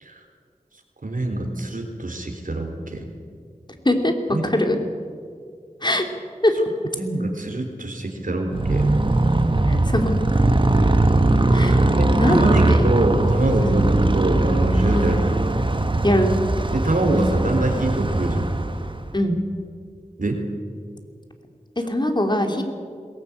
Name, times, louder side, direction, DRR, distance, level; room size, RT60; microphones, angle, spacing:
voice 1, 1.0-3.1 4.3-4.4 7.0-8.9 12.0-15.2 16.7-18.5 20.2-20.4, right 2 dB, 75° right, 3 dB, 3.7 m, -24 dB
voice 2, 3.8-4.8 5.8-6.0 6.4-6.5 9.7-10.4 11.5-11.9 12.2-12.9 13.6-13.8 14.9-15.1 16.0-16.3 19.1-19.4 21.8-22.6, left 1 dB, 35° left, 4 dB, 3.0 m, -22 dB
Motorcycle, 8.5-19.2, right 2 dB, 35° right, 1.3 m, -20 dB
21.5 x 18.0 x 8.8 m, 2.1 s
wide cardioid pair, 50°, 14 cm